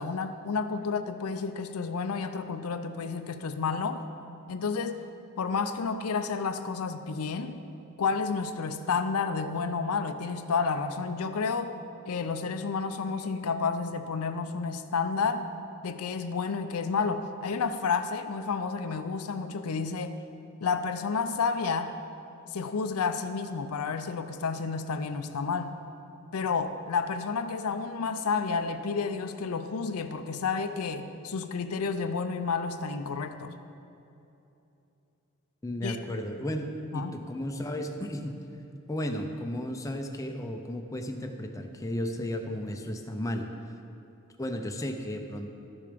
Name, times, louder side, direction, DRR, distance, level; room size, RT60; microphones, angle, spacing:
voice 1, 0.0-4.0 4.5-5.0 5.4-7.6 8.0-11.8 12.1-15.5 15.8-20.2 20.6-21.9 22.5-25.7 26.3-33.5 35.8-36.0 36.9-37.2, left 5 dB, 80° left, 9 dB, 0.5 m, -30 dB
voice 2, 35.6-38.3 38.9-43.5 44.4-45.5, equal, 15° left, 4 dB, 0.6 m, -34 dB
12.5 x 6.8 x 5.1 m, 2.9 s
head